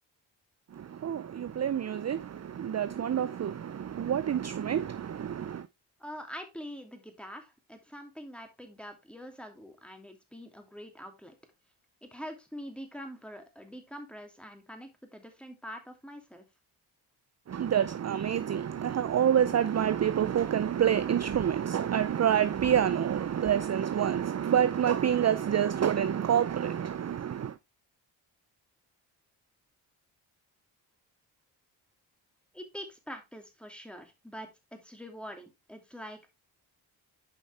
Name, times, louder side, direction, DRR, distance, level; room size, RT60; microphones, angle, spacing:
voice 1, 0.7-5.7 17.5-27.6, right 9 dB, 35° right, 0.5 m, -27 dB
voice 2, 6.0-11.3 12.0-16.4 32.5-36.3, equal, ahead, 2.6 m, -45 dB
8.7 x 5.5 x 3.3 m
supercardioid pair, 50°, 48 cm